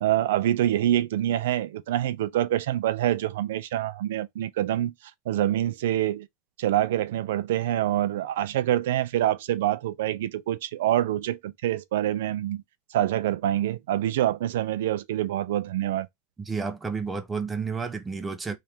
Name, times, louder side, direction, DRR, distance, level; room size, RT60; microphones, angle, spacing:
voice 1, 0.0-4.9 5.3-6.3 6.6-12.6 12.9-16.1, right 13 dB, 70° right, 0.4 m, -26 dB
voice 2, 16.5-18.6, right 5 dB, 10° right, 0.4 m, -31 dB
3.3 x 2.4 x 4.3 m
supercardioid pair, 170°, 0 cm